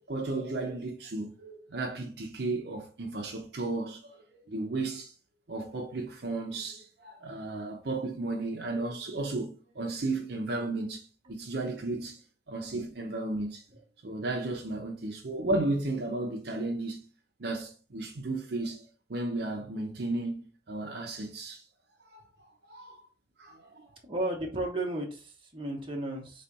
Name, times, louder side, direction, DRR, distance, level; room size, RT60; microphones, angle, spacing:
voice 1, 0.1-5.1 5.5-13.6 14.0-17.0 17.4-18.8 19.1-21.6 22.0-22.2 22.7-23.0 23.4-23.9, right 2 dB, 60° right, 0.6 m, -34 dB
voice 2, 24.0-26.4, right 1 dB, 25° right, 1.1 m, -34 dB
3.5 x 3.3 x 4.1 m
head